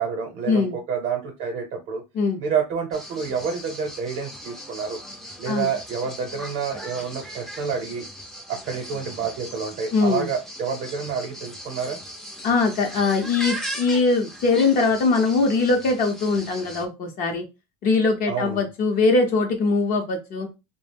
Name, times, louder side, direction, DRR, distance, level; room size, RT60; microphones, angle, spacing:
voice 1, 0.0-2.0 2.4-5.0 5.4-8.1 8.5-12.0 18.3-18.7, right 6 dB, 55° right, 2 dB, 0.7 m, -28 dB
sound 1, 2.9-16.9, equal, ahead, 0.5 m, -38 dB
voice 2, 9.9-10.3 12.4-17.4 17.8-20.5, left 3 dB, 45° left, 3 dB, 0.7 m, -21 dB
2.3 x 2.0 x 3.3 m, 0.25 s
supercardioid pair, 115°, 20 cm